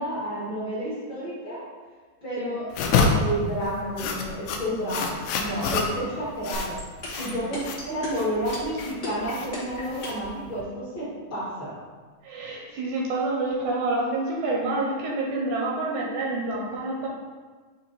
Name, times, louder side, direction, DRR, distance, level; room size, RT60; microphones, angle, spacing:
voice 1, 0.0-1.6 2.2-6.8 7.2-11.7, equal, 45° left, -10 dB, 1.7 m, -30 dB
sound 1, 2.7-10.6, left 4 dB, 80° left, 2.2 m, -28 dB
sound 2, 6.5-10.3, left 3 dB, 65° left, 0.7 m, -35 dB
voice 2, 12.2-17.1, right 2 dB, 80° right, -3 dB, 2.0 m, -28 dB
8.4 x 2.9 x 3.9 m, 1.4 s
omnidirectional pair, 4.0 m